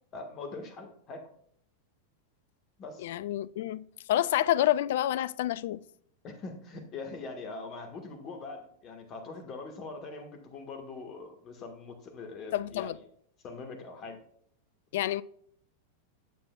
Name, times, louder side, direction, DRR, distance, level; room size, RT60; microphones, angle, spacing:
voice 1, 0.1-1.3 2.8-3.1 6.2-12.9 13.4-14.2, left 3 dB, 30° left, 1.6 m, -42 dB
voice 2, 3.0-5.8 12.5-13.0 14.9-15.2, left 13 dB, 55° left, 0.3 m, -28 dB
9.2 x 7.6 x 2.4 m
figure-of-eight pair, 90°, 0 cm